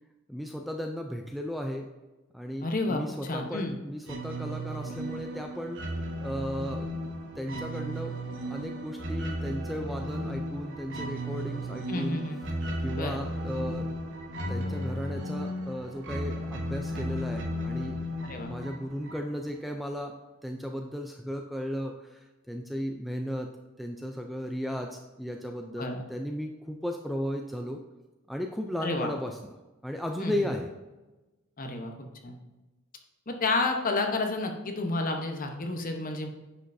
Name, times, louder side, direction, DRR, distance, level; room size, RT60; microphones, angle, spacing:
voice 1, 0.3-1.9 2.3-5.8 6.2-6.9 7.4-8.1 8.5-12.2 12.8-13.9 14.5-18.0 18.2-20.1 20.4-23.5 23.8-27.8 28.3-29.4 29.8-30.7, equal, ahead, 3 dB, 0.3 m, -35 dB
voice 2, 2.6-3.7 11.9-12.4 12.9-13.2 18.3-18.5 25.8-26.0 28.8-29.1 30.2-30.5 31.6-32.3 33.3-36.3, left 2 dB, 40° left, 4 dB, 0.9 m, -30 dB
sound 1, 4.0-19.5, equal, 60° right, 1.0 m, -35 dB
9.8 x 5.4 x 2.6 m, 1.1 s
head